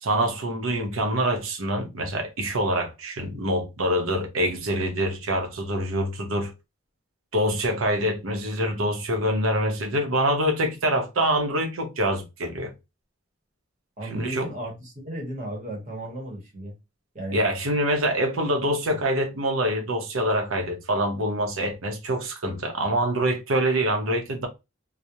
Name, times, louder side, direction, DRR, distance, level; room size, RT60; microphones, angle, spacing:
voice 1, 0.0-6.5 7.3-12.7 14.1-14.5 17.3-24.5, right 1 dB, 85° right, 0.7 m, -25 dB
voice 2, 14.0-16.7 17.1-17.4 18.9-19.0, right 1 dB, 35° right, 0.8 m, -34 dB
2.3 x 2.0 x 2.8 m
head